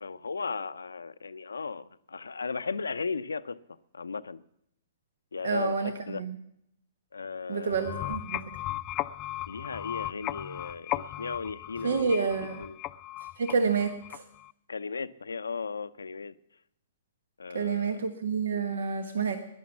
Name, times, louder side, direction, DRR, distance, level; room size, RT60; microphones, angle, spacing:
voice 1, 0.0-3.6 3.9-4.4 5.3-6.2 7.1-8.2 9.5-12.3 12.6-12.8 14.7-16.3 17.4-17.9, left 5 dB, 80° left, 0.6 m, -36 dB
voice 2, 5.4-6.4 7.5-8.4 11.8-12.6 13.4-14.2 17.5-19.4, right 5 dB, 70° right, 1.3 m, -29 dB
sound 1, 7.7-14.5, left 15 dB, 30° left, 0.5 m, -36 dB
18.5 x 11.0 x 7.2 m
figure-of-eight pair, 120°, 0 cm